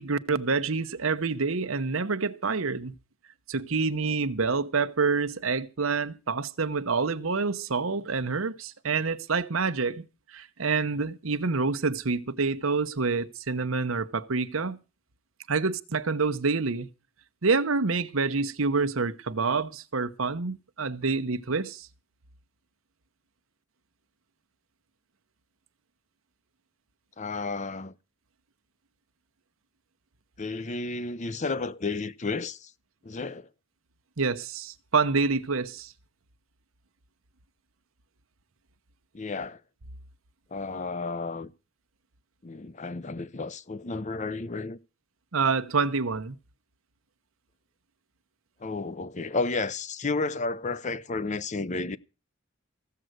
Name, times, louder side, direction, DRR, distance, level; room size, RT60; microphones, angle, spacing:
voice 1, 0.0-2.9 3.5-10.0 10.3-14.8 15.5-16.9 17.4-21.9 34.2-35.9 45.3-46.4, right 4 dB, 85° right, 0.9 m, -27 dB
voice 2, 27.2-27.9 30.4-32.7 33.0-33.5 39.1-39.6 40.5-41.5 42.4-44.8 48.6-52.0, left 3 dB, 35° left, 0.7 m, -32 dB
15.0 x 7.7 x 7.9 m
head